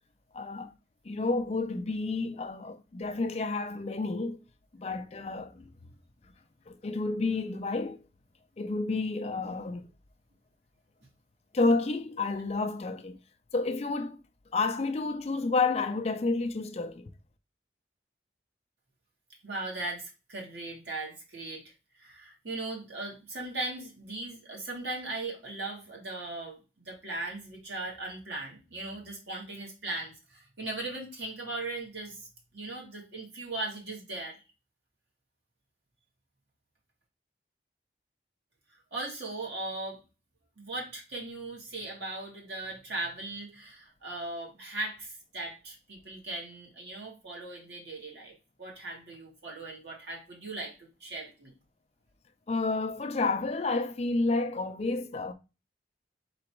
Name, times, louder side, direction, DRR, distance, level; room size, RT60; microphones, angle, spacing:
voice 1, 0.3-0.7 1.0-4.4 4.7-5.7 6.7-8.0 8.6-9.8 11.5-13.2 13.5-14.2 14.5-17.1 52.5-55.3, left 3 dB, 35° left, 0.4 m, -30 dB
voice 2, 19.4-21.6 22.0-32.3 32.5-34.3 38.9-40.0 40.6-51.5, right 2 dB, 75° right, 2.0 m, -38 dB
3.9 x 2.9 x 4.6 m
head